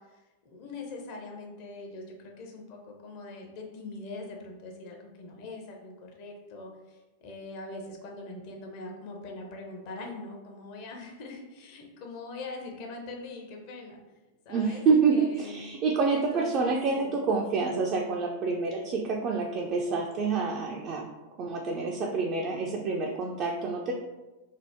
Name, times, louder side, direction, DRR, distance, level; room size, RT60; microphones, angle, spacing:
voice 1, 0.0-14.0 14.4-14.8 15.1-15.7 16.1-17.1, left 3 dB, 45° left, 1 dB, 0.6 m, -42 dB
voice 2, 14.5-21.1 21.4-23.9, right 4 dB, 35° right, 0 dB, 0.3 m, -27 dB
2.8 x 2.0 x 3.4 m, 1.1 s
figure-of-eight pair, 90°, 0 cm